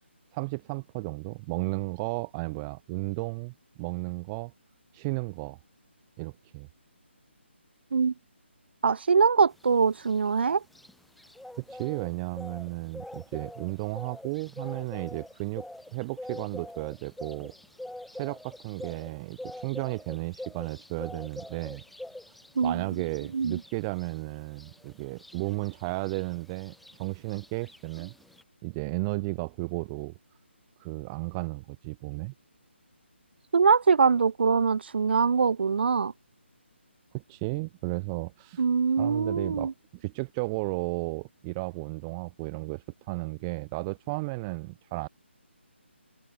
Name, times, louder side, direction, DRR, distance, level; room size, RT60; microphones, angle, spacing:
voice 1, 0.3-4.5 4.9-5.6 6.2-6.7 11.6-15.7 15.9-17.5 18.1-21.8 22.6-26.7 27.0-28.1 28.6-30.1 30.8-32.3 37.1-38.6 39.0-45.1, right 26 dB, 20° right, 1.2 m, -34 dB
voice 2, 8.8-10.6 22.6-22.8 23.3-23.6 33.5-36.1 38.6-39.7, right 5 dB, 55° right, 2.6 m, -23 dB
sound 1, 9.6-28.4, left 1 dB, ahead, 3.2 m, -45 dB
open air
figure-of-eight pair, 155°, 7 cm